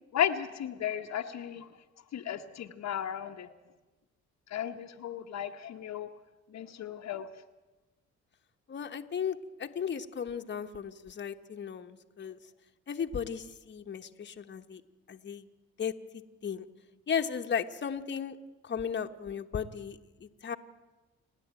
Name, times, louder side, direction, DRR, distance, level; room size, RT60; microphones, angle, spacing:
voice 1, 0.1-1.7 2.1-3.5 4.5-6.1 6.5-7.3, left 9 dB, 60° left, 5 dB, 1.0 m, -34 dB
voice 2, 8.7-12.4 12.9-14.8 15.1-15.4 15.8-16.6 17.1-18.4 18.6-20.6, left 7 dB, 35° left, 6 dB, 1.1 m, -35 dB
29.0 x 10.0 x 8.9 m, 1.2 s
cardioid pair, 90°, 30 cm